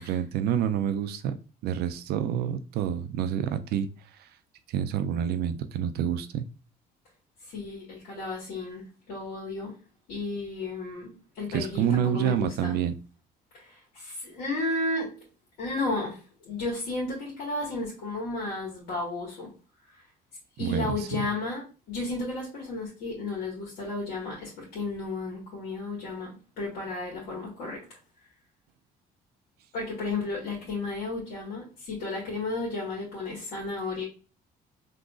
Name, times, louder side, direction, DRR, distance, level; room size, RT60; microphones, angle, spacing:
voice 1, 0.0-1.4 1.6-3.9 4.2-4.3 4.7-6.5 11.5-13.0 20.6-21.1, right 9 dB, 70° right, 10 dB, 0.4 m, -28 dB
voice 2, 7.5-9.7 10.1-12.8 13.5-15.1 15.6-19.5 20.6-21.6 21.9-27.8 29.7-34.0, left 2 dB, 85° left, -5 dB, 1.8 m, -33 dB
3.7 x 2.9 x 2.4 m, 0.34 s
cardioid pair, 110°, 17 cm